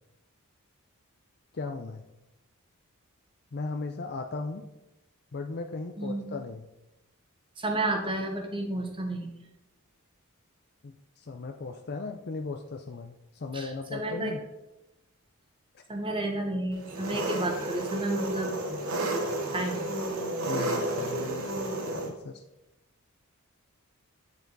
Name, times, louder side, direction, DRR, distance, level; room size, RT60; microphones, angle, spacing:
voice 1, 1.5-2.0 3.5-4.6 5.3-6.7 10.8-14.4 15.7-15.8 20.4-22.4, left 3 dB, 45° left, 5 dB, 0.5 m, -37 dB
voice 2, 6.0-6.3 7.6-9.3 13.5-14.3 15.9-18.5 19.5-19.9, right 2 dB, 25° right, 2 dB, 1.3 m, -31 dB
Engine, 16.8-22.1, right 2 dB, 70° right, 1.9 m, -31 dB
9.1 x 7.0 x 4.0 m, 0.95 s
head